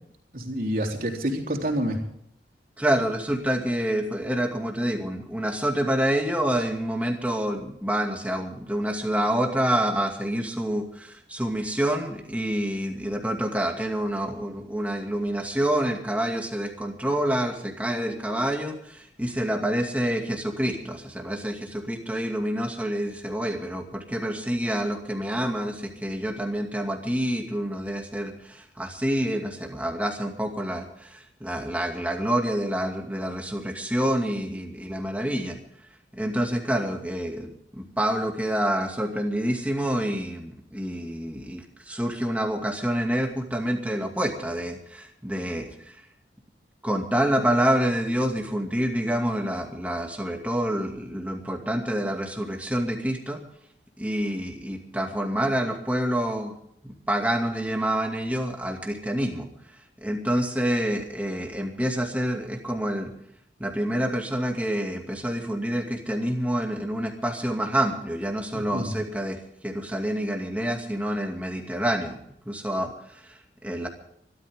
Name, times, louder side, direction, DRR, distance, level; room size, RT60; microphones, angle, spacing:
voice 1, 0.3-2.0 68.5-68.9, equal, 50° right, 1 dB, 3.7 m, -28 dB
voice 2, 2.8-35.6 36.1-46.0 46.8-53.4 54.0-56.6 56.8-59.5 60.0-63.1 63.6-72.2 72.5-73.9, right 1 dB, 10° right, 2 dB, 2.4 m, -27 dB
25.0 x 13.0 x 3.8 m, 0.70 s
head